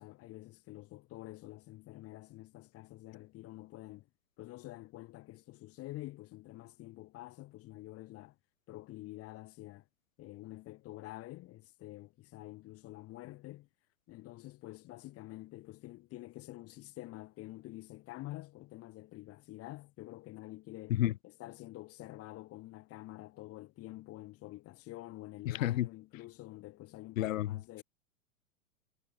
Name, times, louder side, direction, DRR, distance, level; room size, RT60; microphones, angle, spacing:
voice 1, 0.0-4.1 4.4-8.4 8.7-9.9 10.2-13.7 14.1-27.8, left 17 dB, 35° left, 2.0 m, -48 dB
voice 2, 25.5-25.9 27.2-27.5, left 14 dB, 65° left, 0.7 m, -30 dB
hypercardioid pair, 105°, 42 cm